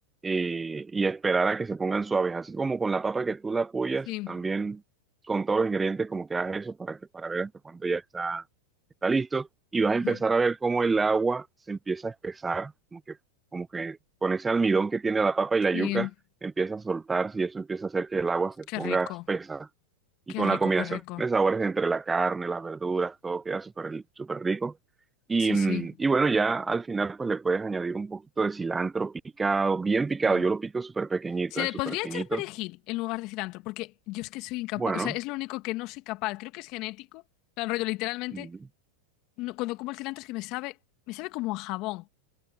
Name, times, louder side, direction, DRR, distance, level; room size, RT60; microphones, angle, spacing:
voice 1, 0.2-4.8 5.3-8.4 9.0-9.5 9.7-13.2 13.5-16.1 16.4-19.7 20.3-24.7 25.3-32.4 34.8-35.1, right 4 dB, 15° right, 0.4 m, -27 dB
voice 2, 15.7-16.1 18.7-19.2 20.3-21.2 25.4-25.9 30.3-30.4 31.5-37.2 37.6-38.5 39.4-40.8 41.1-42.1, left 21 dB, 50° left, 2.2 m, -33 dB
hypercardioid pair, 105°, 0 cm